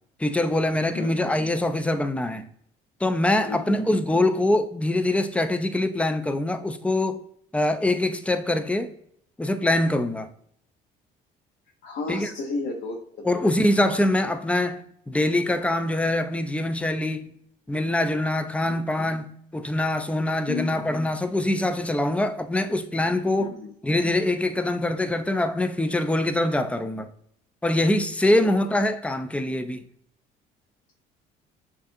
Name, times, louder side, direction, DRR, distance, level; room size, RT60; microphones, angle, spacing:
voice 1, 0.2-2.5 3.0-7.2 7.5-8.9 9.4-10.3 12.1-12.3 13.2-17.3 17.7-23.5 23.8-27.1 27.6-29.8, left 1 dB, 5° left, 0.4 m, -24 dB
voice 2, 0.9-1.3 3.5-3.9 11.8-13.5 18.7-18.8 20.5-20.8 23.4-23.7 28.4-28.5, left 3 dB, 55° left, 0.8 m, -33 dB
6.2 x 2.6 x 2.5 m
supercardioid pair, 75°, 21 cm